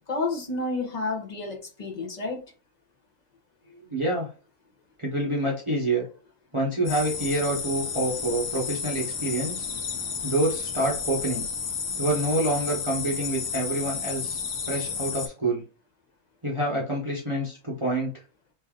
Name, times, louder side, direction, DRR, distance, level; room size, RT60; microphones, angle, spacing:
voice 1, 0.1-2.4, left 3 dB, 40° left, 0.7 m, -30 dB
voice 2, 3.7-4.3 5.0-6.1 6.5-9.7 10.2-11.4 12.0-15.6 16.4-18.1, right 1 dB, 25° right, 0.8 m, -27 dB
sound 1, 6.9-15.3, left 5 dB, 60° left, 1.1 m, -32 dB
3.2 x 2.6 x 3.6 m
omnidirectional pair, 1.5 m